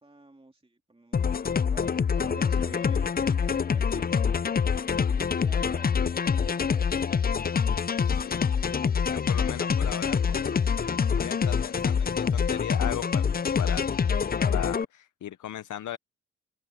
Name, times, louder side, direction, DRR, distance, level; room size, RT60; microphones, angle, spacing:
voice 1, 0.0-4.3 4.9-7.2, right 2 dB, 20° right, 2.6 m, -49 dB
sound 1, 1.1-14.9, left 6 dB, 30° left, 0.5 m, -26 dB
voice 2, 8.0-8.6 9.1-10.6 11.2-13.8 14.4-16.0, left 11 dB, 80° left, 0.7 m, -38 dB
open air
cardioid pair, 65°, 30 cm